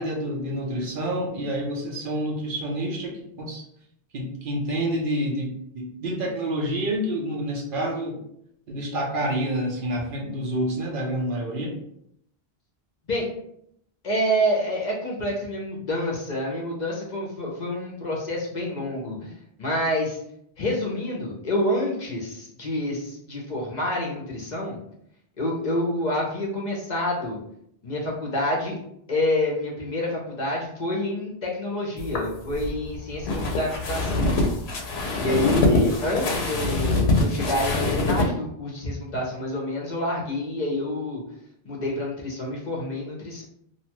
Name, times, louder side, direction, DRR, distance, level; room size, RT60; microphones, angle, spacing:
voice 1, 0.0-3.6 4.1-8.2 8.7-11.8, right 1 dB, 60° right, -1 dB, 0.7 m, -28 dB
voice 2, 14.0-19.3 19.6-20.2 20.6-24.8 25.4-27.4 27.8-28.8 29.1-34.3 35.2-41.2 41.6-43.4, left 1 dB, 50° left, -2 dB, 0.7 m, -27 dB
sound 1, 32.0-38.3, left 2 dB, 80° left, 0.8 m, -24 dB
2.7 x 2.2 x 2.9 m, 0.73 s
omnidirectional pair, 1.1 m